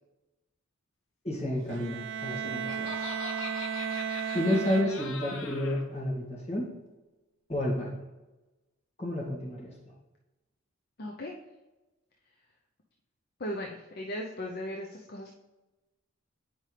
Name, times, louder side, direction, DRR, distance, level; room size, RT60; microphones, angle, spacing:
voice 1, 1.2-3.0 4.3-6.7 7.5-8.0 9.0-9.9, left 1 dB, 30° left, -5 dB, 2.2 m, -31 dB
Bowed string instrument, 1.7-5.4, right 7 dB, 65° right, 0.4 m, -35 dB
Laughter, 2.1-5.8, left 4 dB, 70° left, 1.0 m, -42 dB
voice 2, 11.0-11.3 13.4-15.3, left 1 dB, 50° left, 1 dB, 0.6 m, -37 dB
9.0 x 5.2 x 3.3 m, 1.1 s
head